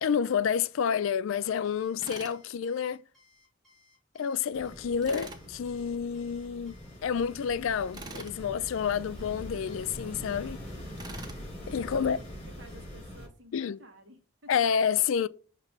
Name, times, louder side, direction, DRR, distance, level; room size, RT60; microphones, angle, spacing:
voice 1, 0.0-3.0 4.1-10.6 11.7-12.2 13.5-13.8 14.5-15.3, left 7 dB, 75° left, 0.4 m, -29 dB
Alarm, 1.6-13.0, left 4 dB, ahead, 3.1 m, -63 dB
Tools, 2.0-2.4 5.0-5.4 7.9-8.4 11.0-11.4, right 2 dB, 20° right, 0.6 m, -43 dB
sound 1, 4.5-13.3, equal, 35° left, 3.6 m, -43 dB
voice 2, 11.6-14.5, right 1 dB, 60° right, 1.4 m, -54 dB
6.7 x 2.9 x 5.9 m
head